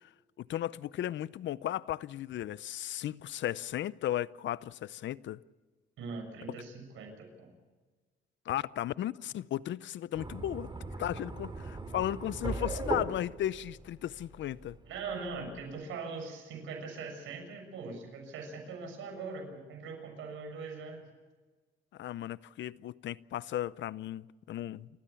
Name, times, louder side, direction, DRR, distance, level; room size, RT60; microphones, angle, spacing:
voice 1, 0.4-5.4 6.5-6.6 8.5-10.7 11.0-14.8 22.0-24.9, left 12 dB, 70° left, 0.6 m, -35 dB
voice 2, 6.0-7.5 14.9-21.1, right 4 dB, 85° right, 6.9 m, -41 dB
sound 1, 10.1-15.8, right 3 dB, 25° right, 3.3 m, -39 dB
30.0 x 15.0 x 7.1 m
cardioid pair, 90°, 20 cm